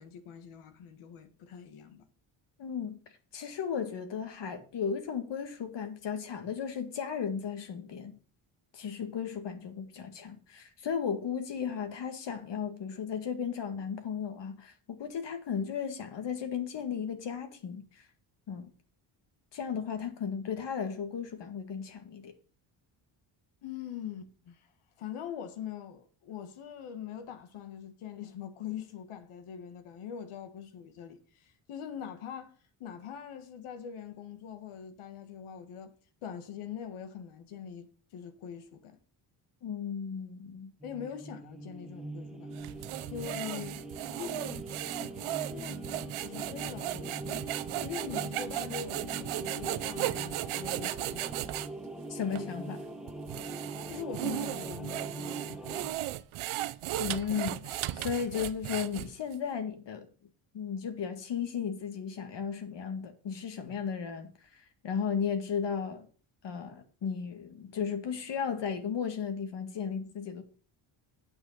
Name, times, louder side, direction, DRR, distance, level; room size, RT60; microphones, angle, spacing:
voice 1, 0.0-2.1 23.6-24.7 25.0-36.0 36.2-39.0 40.8-42.7 43.1-43.8 44.2-45.2 45.5-51.4 53.9-55.9, left 8 dB, 80° left, 1.7 m, -43 dB
voice 2, 2.6-3.0 3.3-8.2 8.7-18.1 18.5-18.7 19.5-22.3 39.6-40.7 52.1-52.8 57.0-60.1 60.5-66.1 66.4-70.4, left 7 dB, 60° left, 1.8 m, -35 dB
sound 1, 40.8-55.9, right 2 dB, ahead, 1.5 m, -42 dB
sound 2, 42.6-51.7 52.3-52.4 53.1-59.3, right 15 dB, 75° right, 0.8 m, -36 dB
8.7 x 6.3 x 6.4 m
cardioid pair, 105°, 49 cm